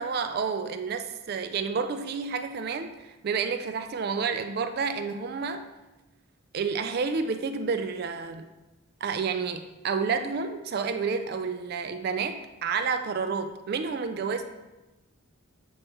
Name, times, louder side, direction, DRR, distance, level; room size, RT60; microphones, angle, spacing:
voice 1, 0.0-5.7 6.5-8.5 9.0-14.5, right 5 dB, 45° right, 8 dB, 0.3 m, -30 dB
7.9 x 3.1 x 4.4 m, 1.1 s
head